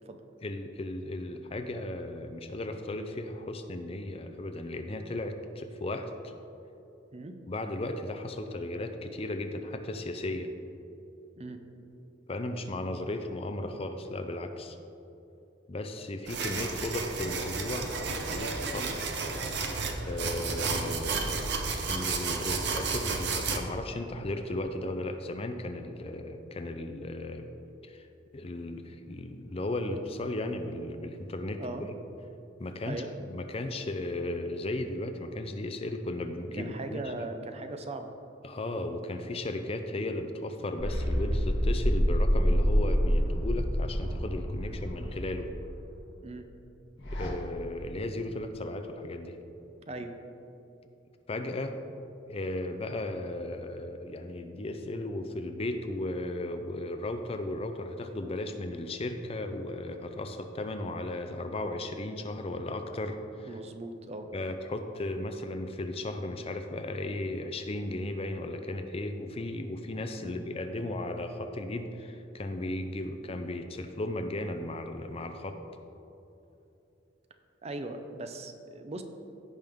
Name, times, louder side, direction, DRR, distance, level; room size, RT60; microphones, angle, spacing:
voice 1, 0.4-6.3 7.5-10.5 12.3-14.8 15.7-18.9 20.1-21.5 21.9-27.5 27.8-28.1 28.3-31.9 32.6-37.3 38.4-45.5 47.0-49.4 51.3-51.8 52.3-63.6 64.3-75.6, left 1 dB, 30° left, 7 dB, 0.5 m, -35 dB
sound 1, 16.3-23.6, right 4 dB, 60° right, 0.9 m, -32 dB
voice 2, 36.6-38.1 44.6-44.8 46.2-46.5 49.9-50.2 63.4-64.3 70.2-70.4 77.6-79.0, right 2 dB, 35° right, 7 dB, 0.6 m, -39 dB
sound 2, 40.8-45.7 47.0-47.3, equal, 70° left, 1.7 m, -27 dB
16.0 x 5.3 x 3.6 m, 2.9 s
head